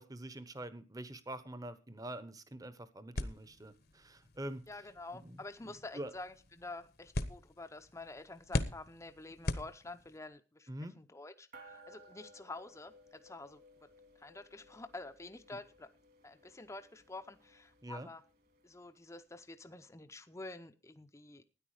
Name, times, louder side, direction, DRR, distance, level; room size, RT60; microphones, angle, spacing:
voice 1, 0.0-4.7 5.2-5.4 5.6-6.1 10.7-11.0 17.8-18.1, right 1 dB, 20° right, 1.0 m, -45 dB
sound 1, 3.1-10.3, left 1 dB, 55° left, 1.1 m, -41 dB
voice 2, 4.7-10.7 11.0-13.9 14.2-15.9 16.2-18.2 18.6-21.4, left 2 dB, 15° left, 0.7 m, -48 dB
sound 2, 11.5-19.2, right 1 dB, 55° right, 2.4 m, -60 dB
13.0 x 9.8 x 4.9 m
head